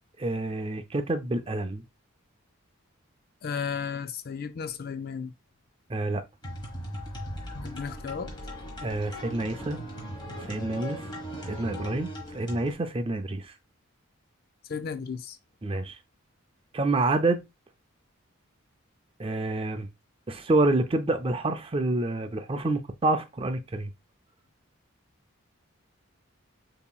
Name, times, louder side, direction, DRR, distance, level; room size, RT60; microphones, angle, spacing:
voice 1, 0.2-1.8 5.9-6.2 8.8-9.8 10.4-11.1 11.5-12.1 12.3-13.5 15.6-16.0 16.7-17.4 19.2-19.9 20.3-23.9, right 2 dB, 25° right, 0.4 m, -27 dB
voice 2, 3.4-5.3 7.6-8.3 14.7-15.4, left 6 dB, 45° left, 0.4 m, -34 dB
sound 1, 6.4-12.7, equal, 20° left, 1.3 m, -38 dB
6.9 x 2.8 x 2.3 m
head